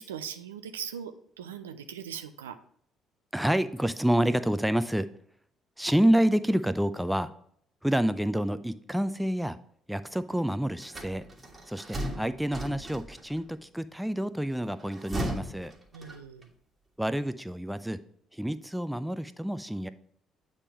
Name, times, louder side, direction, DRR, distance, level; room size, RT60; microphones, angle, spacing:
voice 1, 0.0-2.6 15.9-16.5, right 8 dB, 85° right, 10 dB, 0.3 m, -40 dB
voice 2, 3.3-5.1 5.8-7.3 7.8-9.6 9.9-11.3 11.7-15.7 17.0-18.0 18.3-19.9, right 1 dB, 5° right, 13 dB, 0.5 m, -28 dB
sound 1, 10.8-13.4 14.7-16.5, right 1 dB, 25° right, 1.5 m, -37 dB
8.3 x 3.6 x 4.3 m, 0.65 s
hypercardioid pair, 50°, 0 cm